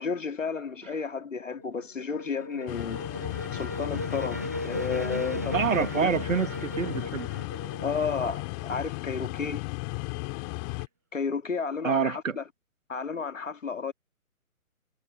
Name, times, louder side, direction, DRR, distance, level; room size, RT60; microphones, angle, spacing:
voice 1, 0.0-3.1 3.5-6.1 7.8-9.6 11.1-12.4 12.9-13.9, left 5 dB, 60° left, 1.9 m, -32 dB
sound 1, 1.4-9.2, equal, 10° right, 0.6 m, -37 dB
sound 2, 2.7-10.9, left 37 dB, 15° left, 2.6 m, -35 dB
voice 2, 5.5-7.3 11.8-12.4, right 6 dB, 60° right, 1.4 m, -27 dB
figure-of-eight pair, 145°, 43 cm